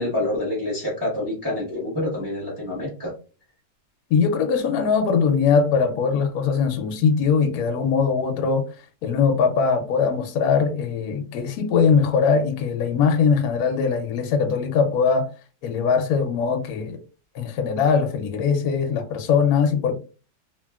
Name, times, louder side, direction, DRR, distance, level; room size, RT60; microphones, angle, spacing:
voice 1, 0.0-3.1, left 1 dB, 15° right, 1.1 m, -27 dB
voice 2, 4.1-8.6 9.0-15.3 15.6-17.0 17.3-19.9, left 6 dB, 75° left, 1.0 m, -21 dB
2.8 x 2.7 x 2.3 m
omnidirectional pair, 1.7 m